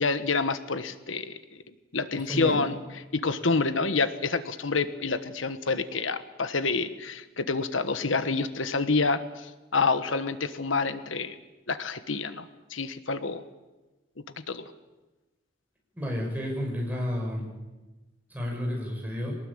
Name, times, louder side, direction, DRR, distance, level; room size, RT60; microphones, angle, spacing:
voice 1, 0.0-1.6 1.9-2.7 3.1-11.4 11.7-13.4 14.5-14.7, left 4 dB, 85° left, 11 dB, 1.3 m, -28 dB
voice 2, 15.9-17.5 18.3-19.3, equal, 10° right, -1 dB, 6.6 m, -31 dB
23.0 x 19.5 x 8.8 m, 1.1 s
head